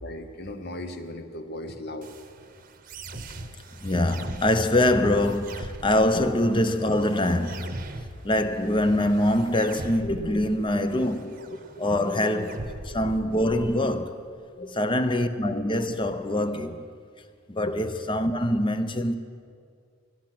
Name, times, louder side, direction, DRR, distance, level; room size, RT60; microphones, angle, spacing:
voice 1, 0.0-2.1 6.1-6.2 10.0-10.8 11.2-12.4 12.9-13.0 13.6-13.8 14.1-14.2 14.5-14.7 17.7-17.8, left 1 dB, 55° left, 1.1 m, -37 dB
sound 1, 2.0-14.0, right 2 dB, 45° right, 0.8 m, -42 dB
voice 2, 3.8-7.8 8.2-11.4 11.8-12.6 12.8-14.2 14.8-16.9 17.5-19.1, left 1 dB, 25° left, 0.7 m, -24 dB
17.0 x 12.5 x 6.0 m
head